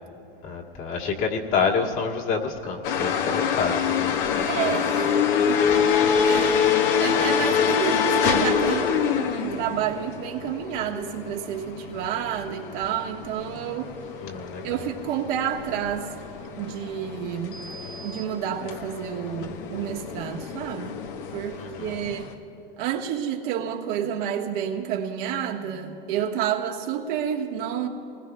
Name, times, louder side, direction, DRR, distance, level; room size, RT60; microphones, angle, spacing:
voice 1, 0.4-4.5 5.7-5.9 14.2-14.9 21.6-22.0, left 5 dB, 45° left, 2.1 m, -28 dB
sound 1, 2.8-22.3, left 7 dB, 65° left, 1.2 m, -26 dB
voice 2, 4.5-5.8 6.2-6.7 7.0-13.9 14.6-16.1 16.6-17.6 18.0-21.0 21.3-22.3 22.8-27.9, right 9 dB, 60° right, 1.4 m, -30 dB
29.0 x 20.0 x 2.3 m
hypercardioid pair, 100°, 29 cm